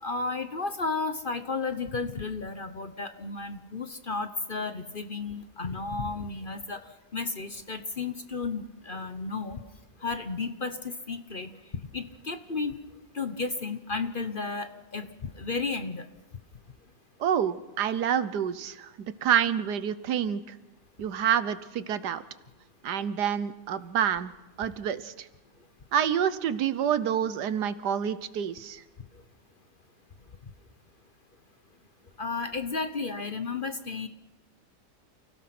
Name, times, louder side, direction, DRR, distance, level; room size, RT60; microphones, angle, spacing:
voice 1, 0.0-6.8 7.1-9.6 10.0-11.5 11.9-12.7 13.1-15.1 15.4-16.0 32.2-34.1, left 4 dB, 40° left, 9 dB, 1.0 m, -33 dB
voice 2, 17.2-20.4 21.0-22.2 22.8-24.3 24.6-25.3 25.9-28.8, right 9 dB, 85° right, 14 dB, 1.5 m, -28 dB
29.5 x 17.0 x 6.0 m, 1.1 s
omnidirectional pair, 1.7 m